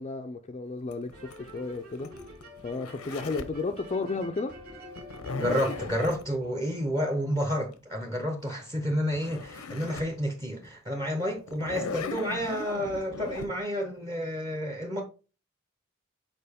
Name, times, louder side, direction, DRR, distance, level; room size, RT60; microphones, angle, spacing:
voice 1, 0.0-2.3 2.6-4.5, left 3 dB, 30° left, 0.4 m, -33 dB
Zipper (clothing), 0.9-3.6 4.9-6.2 8.8-8.9 9.1-10.1 10.6-10.7 11.5-13.5, left 3 dB, 90° left, 0.8 m, -37 dB
sound 1, 1.1-6.9, left 1 dB, 90° right, 2.0 m, -47 dB
voice 2, 5.4-15.0, equal, 20° right, 0.8 m, -30 dB
6.7 x 4.6 x 3.5 m
head